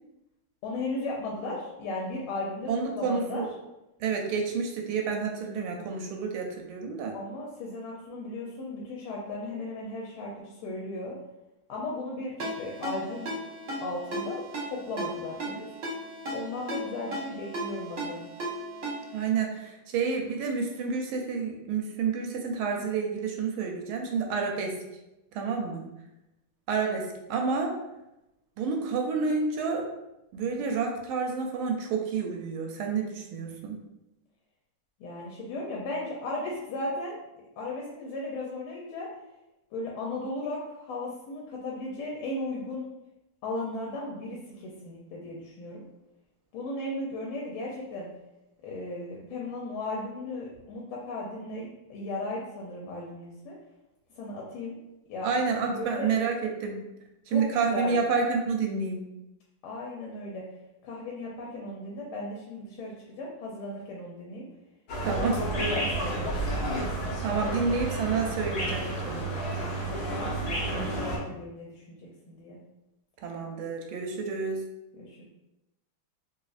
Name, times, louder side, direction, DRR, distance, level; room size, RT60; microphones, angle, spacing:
voice 1, 0.6-3.4 7.1-11.1 11.7-13.3 13.8-15.7 16.3-18.3 35.0-37.2 37.6-39.1 39.7-42.9 43.4-45.8 46.5-48.1 48.6-53.6 54.1-54.8 55.1-55.3 55.7-56.1 57.3-58.0 59.6-60.4 60.8-64.5 65.0-66.9 69.5-70.4 70.7-72.0 72.3-72.6 74.9-75.2, left 2 dB, 85° left, -3 dB, 1.5 m, -36 dB
voice 2, 2.7-3.5 4.0-7.1 19.1-24.7 25.3-25.8 26.7-27.8 28.6-29.9 30.3-33.8 55.2-56.8 57.3-59.0 65.0-65.4 67.2-69.2 73.2-74.6, right 5 dB, 85° right, 2 dB, 1.4 m, -29 dB
Ringtone, 12.4-19.3, right 1 dB, 50° right, 1.0 m, -36 dB
sound 1, 64.9-71.2, right 1 dB, 55° left, 1.3 m, -31 dB
4.1 x 2.5 x 2.4 m, 0.93 s
omnidirectional pair, 2.3 m